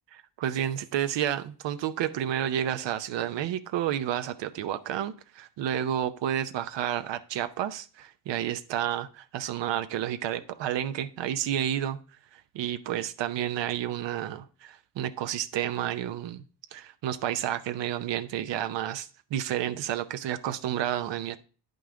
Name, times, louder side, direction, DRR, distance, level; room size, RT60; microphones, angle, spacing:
voice 1, 0.1-12.0 12.3-16.4 16.7-21.4, right 11 dB, 80° right, 0.7 m, -31 dB
9.2 x 5.4 x 3.7 m
cardioid pair, 135°, 43 cm